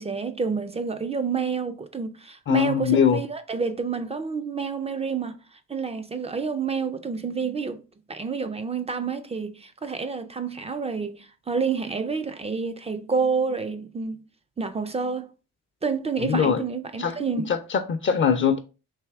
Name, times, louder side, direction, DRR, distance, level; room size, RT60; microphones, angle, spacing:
voice 1, 0.0-5.4 5.7-7.8 8.1-14.2 14.6-15.3 15.8-17.5, right 5 dB, 20° right, 0.3 m, -29 dB
voice 2, 2.5-3.2 16.2-16.6 17.0-18.6, left 7 dB, 40° left, 0.5 m, -22 dB
3.4 x 2.7 x 3.4 m
cardioid pair, 90°, 30 cm